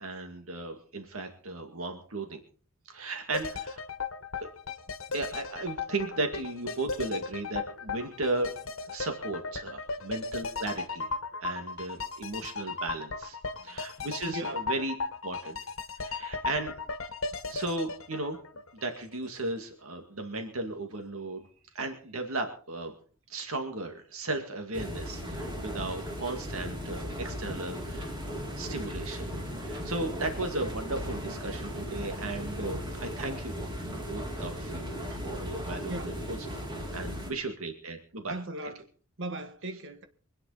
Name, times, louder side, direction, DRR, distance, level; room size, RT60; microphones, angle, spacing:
voice 1, 0.0-2.4 2.9-3.8 4.4-4.5 5.1-8.6 8.9-11.1 11.4-13.4 13.6-14.9 15.2-15.6 16.0-16.7 17.5-18.4 18.7-21.5 21.7-22.9 23.3-33.6 34.1-35.0 35.2-36.4 36.9-38.3, right 2 dB, 80° right, 2.1 m, -35 dB
sound 1, 3.3-19.3 19.6-19.7, left 4 dB, 70° left, 1.4 m, -36 dB
voice 2, 14.3-14.6 35.1-35.3 35.9-36.2 38.3-38.8 39.2-40.1, right 2 dB, 60° right, 1.6 m, -38 dB
sound 2, 24.7-37.3, equal, 20° right, 3.3 m, -37 dB
25.0 x 9.7 x 4.2 m
head